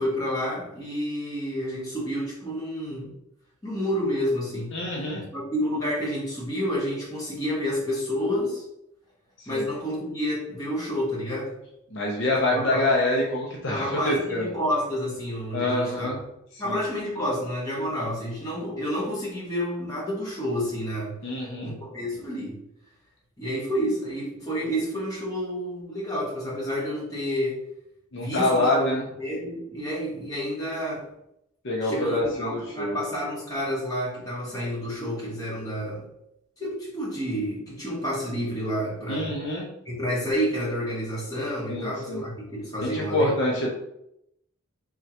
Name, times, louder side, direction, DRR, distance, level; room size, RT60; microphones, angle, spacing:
voice 1, 0.0-3.1 3.6-4.7 5.3-8.6 9.5-11.5 12.5-12.9 13.7-16.1 16.6-22.6 23.4-27.6 28.1-31.1 31.8-36.0 36.6-39.4 39.8-43.3, equal, 15° left, -7 dB, 1.3 m, -29 dB
voice 2, 4.7-5.2 9.4-9.7 11.9-14.5 15.5-16.2 16.5-16.8 21.2-21.7 28.1-29.0 31.6-33.0 39.1-39.7 41.7-42.2 42.8-43.7, left 1 dB, 55° left, -2 dB, 0.6 m, -26 dB
3.6 x 3.2 x 2.8 m, 0.81 s
head